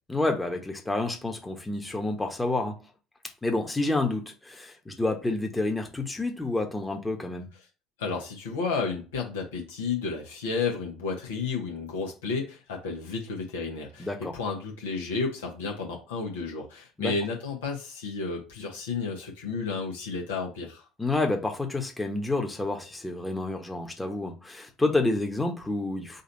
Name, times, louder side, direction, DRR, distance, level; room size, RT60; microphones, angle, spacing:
voice 1, 0.1-2.8 3.4-7.5 14.0-14.3 17.0-17.1 21.0-26.2, left 2 dB, 15° left, 1.2 m, -29 dB
voice 2, 8.0-20.8, left 4 dB, 75° left, 1.3 m, -32 dB
4.1 x 2.8 x 4.0 m
figure-of-eight pair, 55°, 0 cm